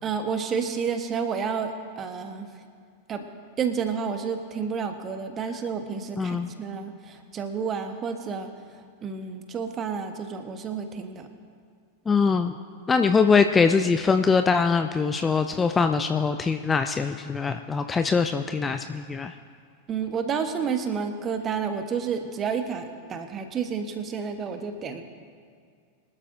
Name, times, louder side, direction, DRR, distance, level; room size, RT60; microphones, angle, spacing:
voice 1, 0.0-2.5 3.1-3.3 3.6-11.3 19.9-25.0, right 6 dB, 25° right, 7 dB, 1.3 m, -30 dB
voice 2, 6.2-6.5 12.1-12.5 12.9-19.3, left 5 dB, 15° left, 8 dB, 0.5 m, -22 dB
24.0 x 12.5 x 2.8 m, 2.1 s
figure-of-eight pair, 90°, 0 cm